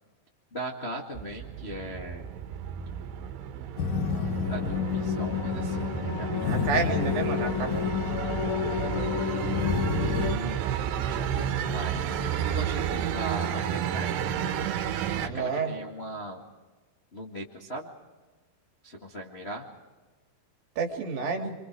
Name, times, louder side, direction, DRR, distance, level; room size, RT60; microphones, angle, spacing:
voice 1, 0.5-2.3 4.5-6.9 9.9-10.6 11.1-14.2 15.2-16.4 17.1-17.9 18.8-19.7, right 1 dB, 30° left, -2 dB, 1.2 m, -39 dB
sound 1, 1.1-15.3, right 9 dB, 90° right, 3.3 m, -32 dB
sound 2, 3.8-10.3, left 7 dB, 65° left, 2.1 m, -29 dB
voice 2, 6.5-7.7 15.3-15.7 20.8-21.5, right 5 dB, 60° right, 2 dB, 3.9 m, -29 dB
29.0 x 25.0 x 4.8 m, 1.3 s
omnidirectional pair, 4.8 m